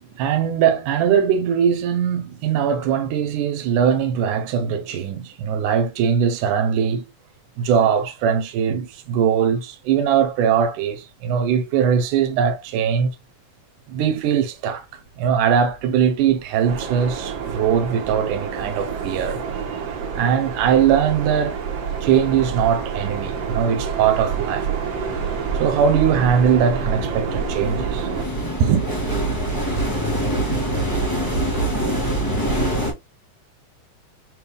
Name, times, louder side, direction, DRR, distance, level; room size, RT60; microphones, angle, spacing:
voice 1, 0.2-7.0 7.6-13.2 13.9-14.9 15.2-19.4 20.1-21.6 22.0-24.7 25.6-28.1 28.6-28.8, right 8 dB, 80° right, 2.4 m, -20 dB
sound 1, 16.2-16.3 16.6-17.6 17.9-32.9, right 1 dB, 10° left, 1.1 m, -27 dB
sound 2, 16.7-28.3, right 7 dB, 60° right, 2.1 m, -28 dB
6.6 x 3.5 x 2.3 m
omnidirectional pair, 3.6 m